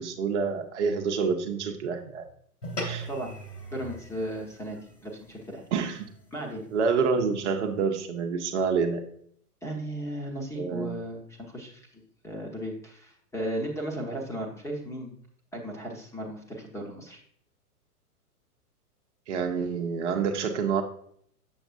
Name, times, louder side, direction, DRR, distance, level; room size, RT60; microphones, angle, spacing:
voice 1, 0.0-2.2 2.8-3.1 5.7-6.1 6.7-9.0 10.6-10.9 19.3-20.8, right 5 dB, 50° right, 4 dB, 0.9 m, -27 dB
sound 1, 2.6-7.2, right 1 dB, 75° left, 2.6 m, -41 dB
voice 2, 3.7-5.6 6.3-6.6 9.6-15.2 15.5-17.2, right 1 dB, 5° left, -1 dB, 0.9 m, -36 dB
7.1 x 6.9 x 2.5 m, 0.64 s
figure-of-eight pair, 105°, 46 cm